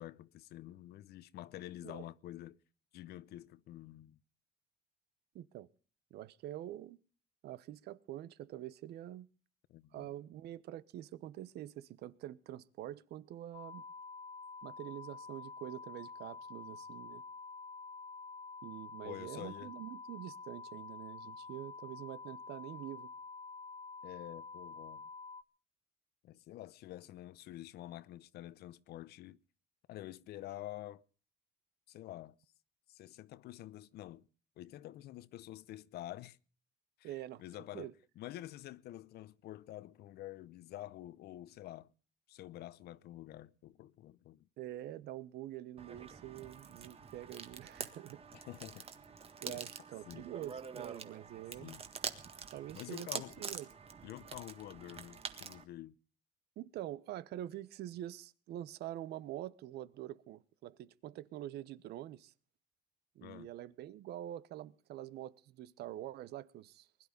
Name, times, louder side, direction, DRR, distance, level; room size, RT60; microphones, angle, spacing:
voice 1, 0.0-2.6 2.9-4.2 9.7-10.1 19.0-19.7 24.0-25.0 26.2-29.4 29.9-31.0 31.9-32.3 32.9-34.3 34.6-36.4 37.0-37.1 37.4-41.9 42.3-44.5 48.3-48.9 49.4-49.6 50.1-50.3 51.6-51.8 52.8-53.4 54.0-56.0 63.2-63.5, left 14 dB, 70° left, 0.8 m, -48 dB
voice 2, 5.3-5.7 6.1-7.0 7.4-9.3 9.9-13.8 14.6-17.2 18.6-23.1 37.0-37.4 37.7-37.9 44.6-48.2 49.4-51.7 52.5-53.7 56.6-62.3 63.1-67.1, right 13 dB, 75° right, 1.0 m, -46 dB
sound 1, 13.5-25.4, left 4 dB, 35° left, 0.8 m, -48 dB
sound 2, 45.8-55.6, right 6 dB, 35° right, 1.7 m, -46 dB
20.5 x 11.5 x 5.3 m
cardioid pair, 110°, 17 cm